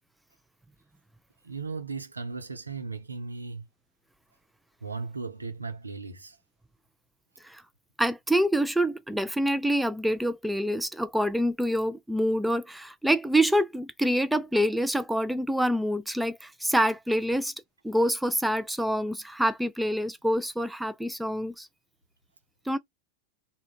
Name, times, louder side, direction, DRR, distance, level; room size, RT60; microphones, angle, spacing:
voice 1, 1.4-3.7 4.8-6.4, right 4 dB, 80° right, 0.8 m, -36 dB
voice 2, 8.0-17.5 17.8-21.7 22.7-22.8, equal, ahead, 0.3 m, -26 dB
3.6 x 2.2 x 4.1 m
figure-of-eight pair, 90°, 0 cm